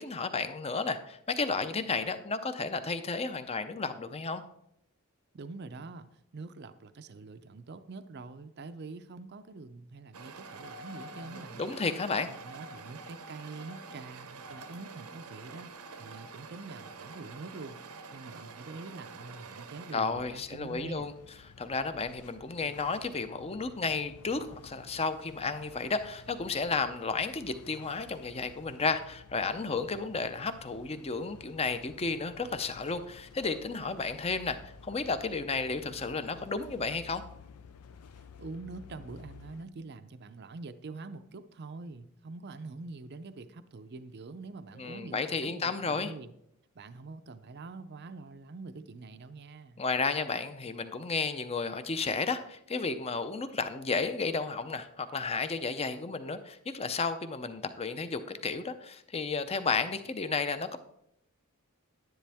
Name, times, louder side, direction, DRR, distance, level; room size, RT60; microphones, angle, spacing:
voice 1, 0.0-4.4 11.5-12.3 19.9-21.1 21.6-37.2 44.8-46.1 49.8-60.8, left 4 dB, 25° left, 10 dB, 0.6 m, -32 dB
voice 2, 5.3-6.1 6.3-11.7 12.3-17.8 18.1-21.1 38.4-46.3 46.8-49.8, right 3 dB, 50° right, 11 dB, 0.5 m, -45 dB
sound 1, 10.1-20.0, right 4 dB, 85° right, 0.9 m, -47 dB
sound 2, 20.1-39.6, left 4 dB, 90° left, 0.6 m, -53 dB
10.5 x 10.0 x 3.5 m, 0.77 s
head